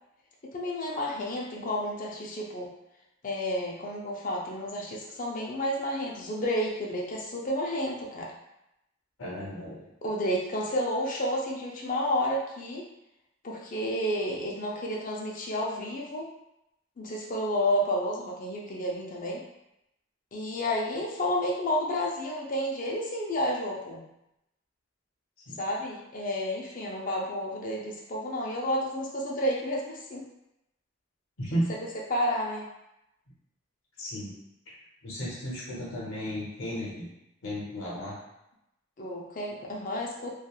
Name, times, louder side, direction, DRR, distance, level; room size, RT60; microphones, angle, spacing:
voice 1, 0.4-2.7 3.2-8.3 10.0-12.9 13.4-16.3 17.0-19.4 20.3-24.0 25.6-30.2 32.1-32.7 39.0-40.3, equal, 40° left, -2 dB, 0.5 m, -31 dB
voice 2, 9.2-9.9 25.5-25.6 31.4-31.7 34.0-34.3 35.0-37.1 37.4-38.2, equal, 80° left, -5 dB, 0.7 m, -34 dB
2.9 x 2.4 x 2.3 m, 0.87 s
head